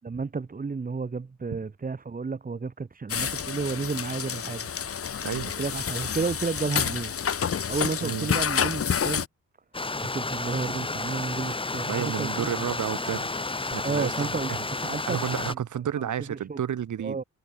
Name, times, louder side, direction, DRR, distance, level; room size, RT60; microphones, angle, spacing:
voice 1, 0.0-4.7 5.6-7.1 7.7-9.2 10.0-12.5 13.8-15.2 15.5-15.6 15.9-16.6 17.0-17.2, right 4 dB, 30° right, 4.7 m, -32 dB
sound 1, 3.1-9.3, left 7 dB, 50° left, 2.4 m, -29 dB
voice 2, 8.0-8.3 11.9-13.4 13.7-14.6 15.1-17.2, right 9 dB, 85° right, 5.7 m, -31 dB
Stream, 9.7-15.5, left 3 dB, 20° left, 3.2 m, -31 dB
wide cardioid pair, 175°, 29 cm